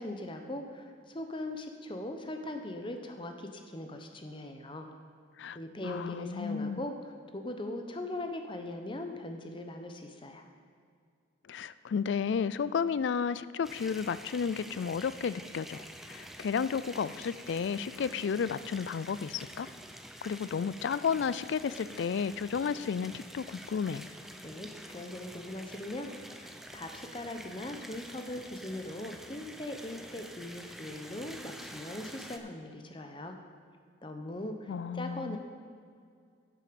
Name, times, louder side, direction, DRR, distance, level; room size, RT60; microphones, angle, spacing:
voice 1, 0.0-4.9 5.5-10.4 24.4-33.4 34.0-35.4, left 1 dB, 25° left, 5 dB, 0.8 m, -40 dB
voice 2, 5.8-6.8 11.5-19.7 20.2-24.0 34.7-35.4, left 6 dB, 70° left, 16 dB, 0.3 m, -32 dB
sound 1, 13.6-32.4, equal, ahead, 0.5 m, -48 dB
10.5 x 8.5 x 5.2 m, 2.2 s
head